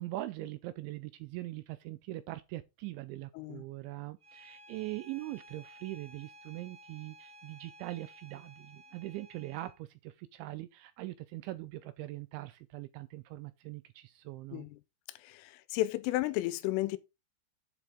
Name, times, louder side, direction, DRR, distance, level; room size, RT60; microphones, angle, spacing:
voice 1, 0.0-14.7, right 17 dB, 85° right, 2.7 m, -42 dB
Bowed string instrument, 4.2-9.8, right 1 dB, 25° right, 1.9 m, -55 dB
voice 2, 15.2-17.0, left 17 dB, 85° left, 3.1 m, -33 dB
8.5 x 7.3 x 3.7 m
omnidirectional pair, 5.8 m